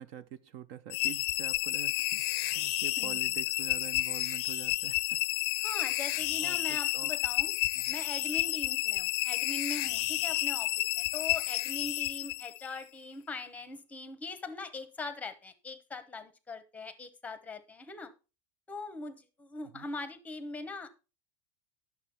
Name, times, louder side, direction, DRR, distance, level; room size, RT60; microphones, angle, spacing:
voice 1, 0.0-5.2 6.4-7.1 7.7-8.0 19.7-19.9, right 10 dB, 45° right, 0.5 m, -45 dB
sound 1, 0.9-12.8, left 20 dB, 50° left, 0.5 m, -31 dB
voice 2, 5.6-7.5 7.9-18.1 18.7-21.0, left 3 dB, 10° left, 0.9 m, -41 dB
11.0 x 6.8 x 4.3 m
supercardioid pair, 170°, 16 cm